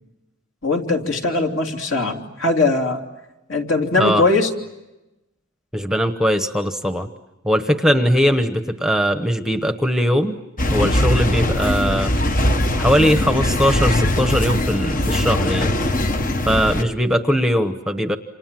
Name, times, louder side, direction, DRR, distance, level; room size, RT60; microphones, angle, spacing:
voice 1, 0.6-3.0 3.5-4.5, left 3 dB, 60° left, 3 dB, 3.0 m, -20 dB
voice 2, 5.7-7.1 7.4-10.4 10.7-12.1 12.8-15.8 16.5-18.2, equal, 5° right, 8 dB, 1.0 m, -20 dB
sound 1, 10.6-16.8, left 1 dB, 40° left, 1.1 m, -20 dB
29.0 x 27.0 x 7.6 m, 0.99 s
head